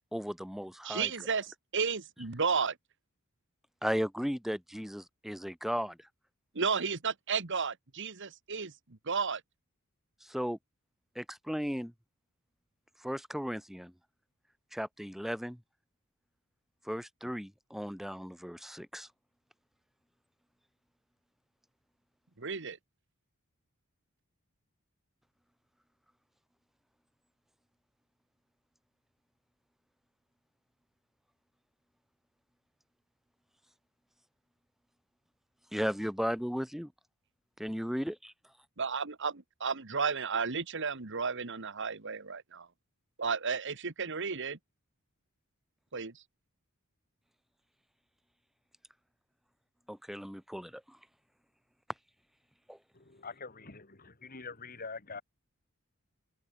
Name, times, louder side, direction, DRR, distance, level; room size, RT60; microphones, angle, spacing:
voice 1, 0.1-1.1 3.8-6.0 10.3-10.6 11.1-11.9 13.0-13.9 14.7-15.6 16.9-19.1 35.7-36.9 37.6-38.3 49.9-51.0 52.7-52.8, equal, ahead, 2.8 m, -35 dB
voice 2, 0.8-2.8 6.5-9.4 22.4-22.8 38.8-42.7 43.2-44.6 45.9-46.2, right 5 dB, 60° right, 1.6 m, -33 dB
voice 3, 52.9-55.2, left 4 dB, 45° left, 2.9 m, -45 dB
head